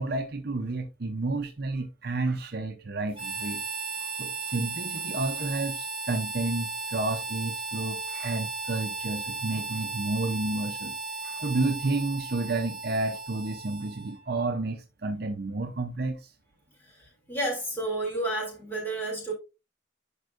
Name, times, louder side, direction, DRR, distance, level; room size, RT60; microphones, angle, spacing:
voice 1, 0.0-3.6 4.0-11.0 11.2-16.3, right 2 dB, 50° right, 0.7 m, -31 dB
Harmonica, 3.1-14.2, right 3 dB, 25° right, 1.6 m, -35 dB
voice 2, 16.8-19.3, right 1 dB, 10° left, 3.0 m, -31 dB
11.0 x 4.5 x 2.5 m
head